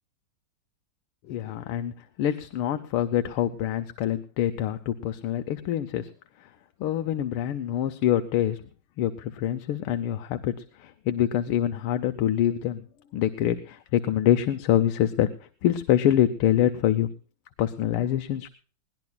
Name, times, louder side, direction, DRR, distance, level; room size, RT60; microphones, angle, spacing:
voice 1, 1.3-1.9 2.2-6.1 6.8-8.6 9.0-10.5 10.8-12.8 13.1-15.3 15.6-17.1 17.6-18.5, left 11 dB, 80° left, 9 dB, 1.7 m, -25 dB
21.5 x 17.5 x 2.3 m, 0.40 s
omnidirectional pair, 2.4 m